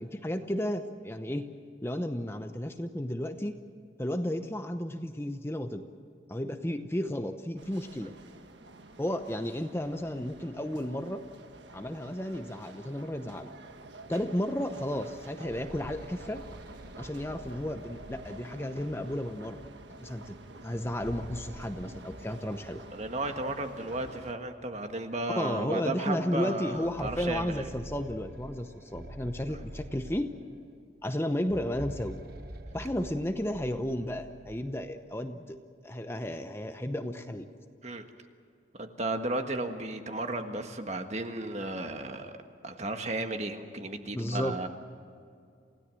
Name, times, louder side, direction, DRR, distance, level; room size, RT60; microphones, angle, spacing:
voice 1, 0.0-1.5 1.8-3.6 4.0-5.8 6.3-8.1 9.0-11.2 11.7-13.5 14.1-16.5 17.0-19.6 20.0-20.3 20.6-22.8 25.4-30.3 31.0-32.2 32.7-35.6 35.8-37.5 44.1-44.6, left 1 dB, 15° left, 7 dB, 0.8 m, -33 dB
sound 1, 7.6-24.3, right 2 dB, 75° right, 1.5 m, -49 dB
sound 2, 15.3-18.9 20.7-22.9 23.2-23.3 24.2-24.3 24.8-24.9 26.5-30.7 31.4-34.8, right 1 dB, 55° right, 1.2 m, -47 dB
voice 2, 22.9-27.7 37.8-38.0 38.8-42.4 42.6-44.7, right 2 dB, 35° right, 6 dB, 1.6 m, -34 dB
28.5 x 17.0 x 7.7 m, 2.4 s
head